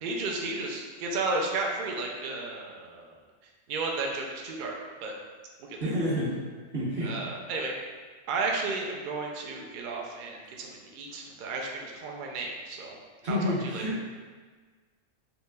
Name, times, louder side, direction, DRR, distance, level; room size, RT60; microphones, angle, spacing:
voice 1, 0.0-3.2 3.7-4.7 5.0-5.1 5.6-5.9 7.0-7.7 8.3-13.0 13.3-13.9, right 3 dB, 70° right, 0 dB, 0.4 m, -33 dB
voice 2, 5.8-6.3 6.7-7.1 13.2-14.0, left 1 dB, 50° right, -12 dB, 1.0 m, -28 dB
4.0 x 2.8 x 2.2 m, 1.4 s
omnidirectional pair, 1.4 m